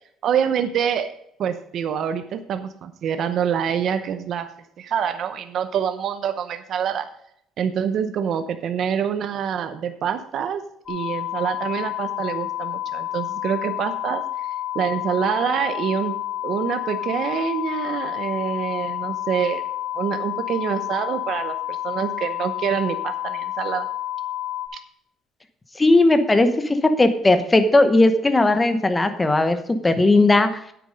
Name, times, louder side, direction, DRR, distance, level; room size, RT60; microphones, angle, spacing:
voice 1, 0.2-1.1 1.4-4.5 4.8-7.1 7.6-10.6 10.9-14.5 14.7-16.1 16.4-19.6 19.9-23.9, right 8 dB, 50° right, 9 dB, 0.8 m, -26 dB
sound 1, 10.9-24.7, left 13 dB, 30° left, 3.0 m, -29 dB
voice 2, 25.8-30.6, left 2 dB, 15° left, 9 dB, 1.0 m, -17 dB
9.5 x 8.5 x 5.1 m, 0.72 s
cardioid pair, 150°, 0 cm